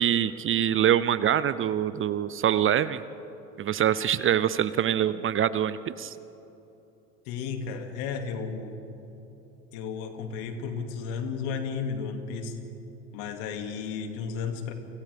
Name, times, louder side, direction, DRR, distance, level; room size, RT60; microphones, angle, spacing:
voice 1, 0.0-3.0 3.6-6.1, right 10 dB, 30° right, 16 dB, 0.6 m, -24 dB
voice 2, 7.3-8.8 9.7-12.6 13.1-14.7, left 5 dB, 65° left, 5 dB, 2.4 m, -33 dB
30.0 x 25.5 x 3.5 m, 3.0 s
hypercardioid pair, 75°, 40 cm